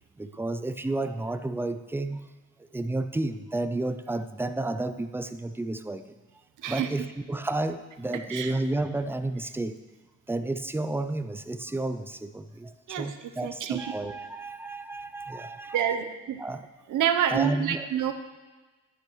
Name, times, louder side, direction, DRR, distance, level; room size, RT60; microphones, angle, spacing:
voice 1, 0.2-2.2 2.7-6.0 6.7-9.7 10.3-16.0 16.4-16.6 17.3-17.9, right 2 dB, 10° right, 10 dB, 0.3 m, -31 dB
voice 2, 13.4-13.9 15.7-16.4 16.9-18.1, right 9 dB, 80° right, 8 dB, 0.8 m, -27 dB
11.0 x 9.8 x 3.1 m, 1.3 s
cardioid pair, 125°, 30 cm